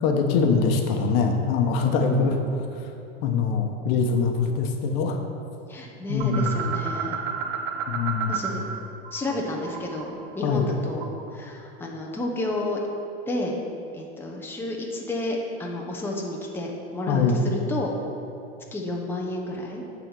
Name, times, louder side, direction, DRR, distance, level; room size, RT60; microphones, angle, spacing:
voice 1, 0.0-2.4 3.2-5.2 6.1-6.6 7.9-8.4 10.4-10.7 17.1-17.5, left 5 dB, 60° left, 3 dB, 1.1 m, -23 dB
voice 2, 2.0-2.4 5.7-7.1 8.3-8.7 9.1-12.8 13.3-13.6 13.9-18.0 18.7-19.8, left 1 dB, 5° left, -1 dB, 0.9 m, -31 dB
sound 1, 6.2-8.8 9.1-11.4, right 6 dB, 55° right, 0.8 m, -32 dB
8.8 x 4.1 x 6.9 m, 2.7 s
supercardioid pair, 120°, 32 cm